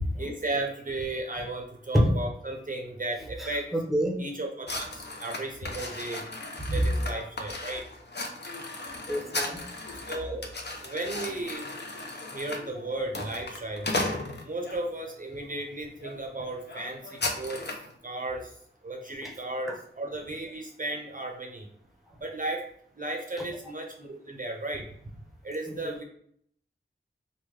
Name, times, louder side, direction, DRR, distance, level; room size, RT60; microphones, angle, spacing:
voice 1, 0.2-3.7 4.2-6.2 6.7-7.9 10.0-10.4 10.8-11.7 12.3-13.9 14.4-17.8 18.0-18.6 18.8-21.7 22.2-22.6 23.0-24.8 25.4-26.0, right 2 dB, 40° right, 2 dB, 0.5 m, -35 dB
voice 2, 3.4-4.2 6.7-6.8 9.1-9.6 19.2-19.3, equal, ahead, 0 dB, 0.7 m, -27 dB
sound 1, 4.7-14.8 15.4-15.6 16.0-16.2 16.4-17.9, left 2 dB, 55° left, 0.6 m, -36 dB
3.4 x 2.1 x 3.1 m, 0.64 s
wide cardioid pair, 65°, 21 cm